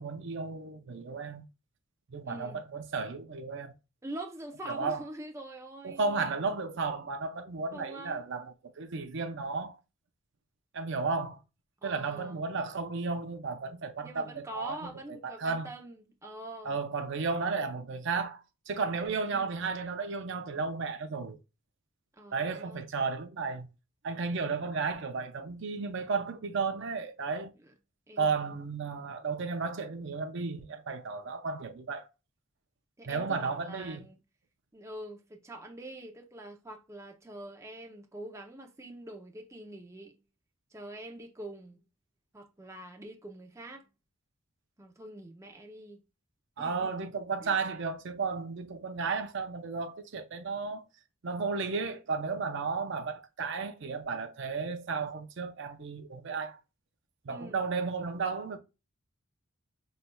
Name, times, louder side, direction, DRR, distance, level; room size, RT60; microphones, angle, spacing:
voice 1, 0.0-1.4 2.1-3.7 4.7-5.0 5.8-9.8 10.7-11.4 11.8-15.7 16.6-18.4 18.7-21.4 22.3-23.7 24.0-27.5 28.2-32.1 33.1-34.1 46.6-50.8 51.2-56.6 57.2-58.6, right 4 dB, 60° right, 0.5 m, -33 dB
voice 2, 2.2-2.6 4.0-6.4 7.7-8.2 11.8-12.4 14.0-16.8 19.2-19.5 22.1-22.9 27.6-27.7 28.1-28.4 33.0-34.2 34.7-40.2 40.7-41.8 42.3-43.9 44.8-46.0 46.6-46.9 47.4-47.5 57.3-57.6, right 1 dB, 15° right, 0.6 m, -45 dB
5.6 x 3.2 x 2.2 m
head